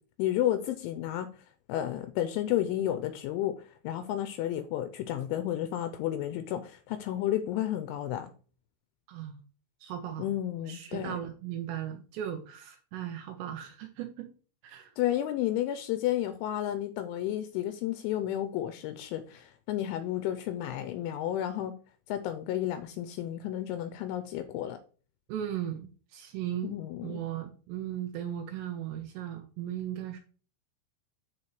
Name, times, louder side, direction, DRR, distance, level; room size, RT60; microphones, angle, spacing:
voice 1, 0.2-1.3 1.7-8.3 10.2-11.2 15.0-21.7 22.1-24.8 26.6-27.2, left 12 dB, 85° left, 2.8 m, -32 dB
voice 2, 9.1-9.4 9.8-10.3 10.7-14.3 14.6-14.9 25.3-26.8 27.0-30.2, right 10 dB, 85° right, 2.5 m, -37 dB
12.5 x 4.3 x 3.1 m
omnidirectional pair, 5.7 m